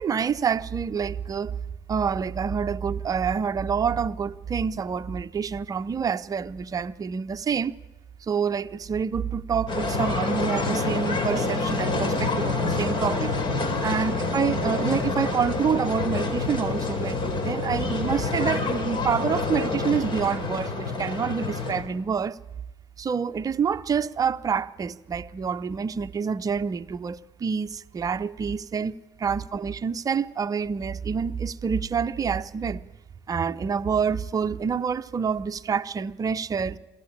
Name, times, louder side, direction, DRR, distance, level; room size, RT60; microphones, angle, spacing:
voice 1, 0.0-1.5 1.9-7.7 8.2-13.3 13.8-22.4 23.0-32.8 33.3-36.8, right 6 dB, 30° right, 0.7 m, -27 dB
sound 1, 9.7-21.8, left 3 dB, 40° left, 3.8 m, -27 dB
22.5 x 15.5 x 9.8 m
supercardioid pair, 90°, 12 cm